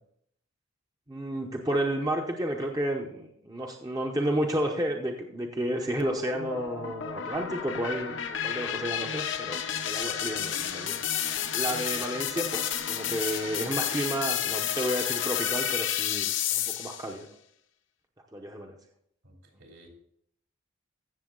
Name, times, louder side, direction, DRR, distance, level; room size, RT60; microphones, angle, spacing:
voice 1, 1.1-17.3 18.3-18.8, right 1 dB, 15° right, 2 dB, 0.8 m, -32 dB
sound 1, 6.0-17.1, left 9 dB, 60° left, 0.8 m, -31 dB
voice 2, 19.2-19.9, right 1 dB, 65° right, 1 dB, 3.4 m, -54 dB
15.0 x 7.0 x 3.8 m, 0.70 s
head